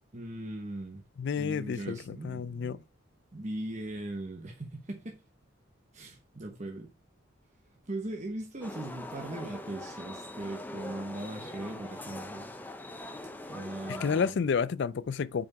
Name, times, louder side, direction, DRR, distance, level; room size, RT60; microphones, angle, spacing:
voice 1, 0.1-1.0 1.4-2.8 3.3-5.2 5.9-6.9 7.9-12.5 13.0-14.4, right 1 dB, 35° right, 1.0 m, -39 dB
voice 2, 1.2-2.8 13.9-15.5, left 6 dB, 60° left, 0.3 m, -30 dB
sound 1, 8.6-14.3, left 1 dB, 10° left, 0.5 m, -42 dB
5.8 x 4.8 x 4.7 m
head